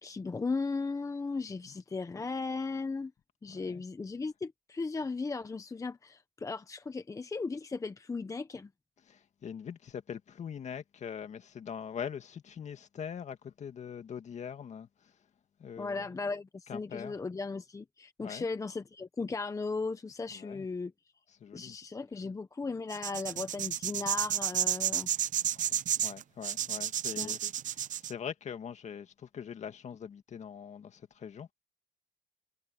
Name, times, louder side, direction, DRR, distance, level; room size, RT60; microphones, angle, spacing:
voice 1, 0.0-3.1 3.4-8.7 15.8-20.9 21.5-25.1 27.2-27.3, left 4 dB, 20° left, 0.9 m, -36 dB
voice 2, 3.5-3.8 9.1-15.1 15.6-16.1 16.7-17.2 18.2-18.4 20.3-20.7 21.4-21.8 25.5-25.8 26.0-31.5, left 7 dB, 45° left, 2.0 m, -42 dB
sound 1, 22.9-28.1, right 10 dB, 50° right, 0.7 m, -31 dB
cardioid pair, 110°, 17 cm